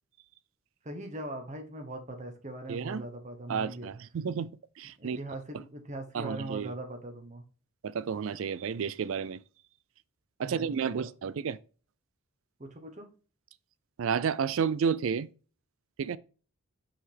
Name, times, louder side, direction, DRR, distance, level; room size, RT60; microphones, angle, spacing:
voice 1, 0.8-3.9 5.0-7.4 10.4-11.1 12.6-13.1, right 1 dB, 30° right, 1.1 m, -41 dB
voice 2, 2.7-3.0 3.5-4.5 4.8-5.2 5.5-5.6 6.1-6.7 7.8-9.4 10.4-11.6 14.0-15.3 16.0-16.2, right 6 dB, 65° right, 0.4 m, -31 dB
5.8 x 5.4 x 3.4 m
head